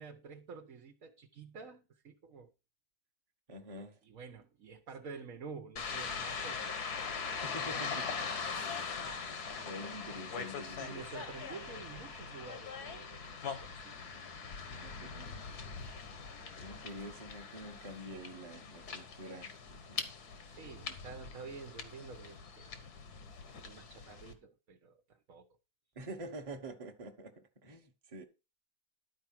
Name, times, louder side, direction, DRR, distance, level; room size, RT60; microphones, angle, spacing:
voice 1, 0.0-2.5 3.7-6.8 7.7-7.9 10.8-14.0 20.4-22.7 23.6-25.5, right 5 dB, 60° right, 1.4 m, -49 dB
voice 2, 3.5-4.0 7.4-8.1 8.3-8.4 8.9-11.1 14.1-14.2 14.7-15.4 15.7-15.9 16.6-20.1 20.8-20.9 25.9-28.2, right 1 dB, 25° right, 1.2 m, -47 dB
sound 1, 5.8-24.3, left 5 dB, 80° left, 1.9 m, -42 dB
11.5 x 4.7 x 6.0 m
omnidirectional pair, 1.6 m